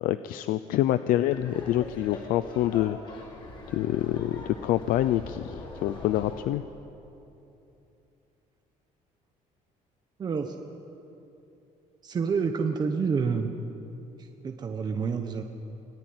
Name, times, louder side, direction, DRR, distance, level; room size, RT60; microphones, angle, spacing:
voice 1, 0.0-3.2 3.7-6.6, left 13 dB, 80° left, 12 dB, 0.7 m, -26 dB
Laughter, 1.3-6.4, left 2 dB, 35° left, 5.2 m, -43 dB
voice 2, 10.2-10.5 12.0-13.5 14.2-15.4, right 5 dB, 30° right, 4 dB, 1.1 m, -28 dB
24.5 x 19.0 x 9.6 m, 2.9 s
cardioid pair, 165°, 14 cm